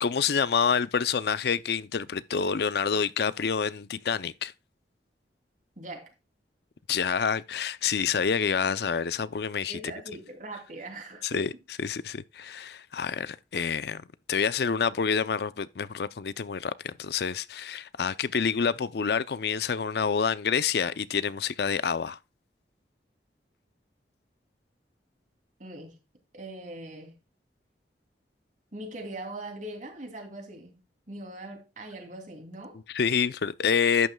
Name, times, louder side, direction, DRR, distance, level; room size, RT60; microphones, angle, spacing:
voice 1, 0.0-4.5 6.9-9.9 11.2-22.2 32.9-34.1, left 6 dB, 60° left, 0.5 m, -28 dB
voice 2, 5.8-6.1 9.7-11.4 25.6-26.0 26.3-27.2 28.7-30.8 31.1-32.8, right 1 dB, 45° right, 2.8 m, -41 dB
12.0 x 9.3 x 2.2 m
head